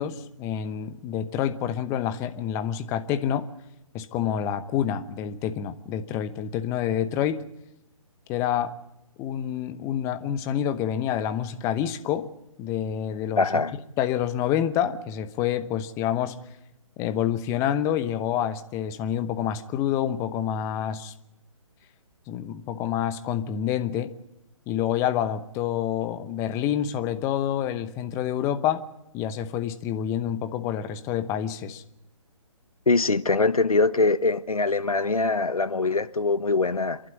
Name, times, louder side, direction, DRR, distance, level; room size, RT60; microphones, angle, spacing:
voice 1, 0.0-3.5 3.9-7.4 8.3-8.7 9.2-12.3 12.6-13.5 14.0-16.3 17.0-21.1 22.3-24.1 24.7-28.8 29.1-31.8, left 10 dB, 15° left, 0.9 m, -27 dB
voice 2, 13.4-13.7 32.9-37.0, left 3 dB, 85° left, 1.1 m, -23 dB
28.0 x 11.5 x 9.6 m
figure-of-eight pair, 140°, 18 cm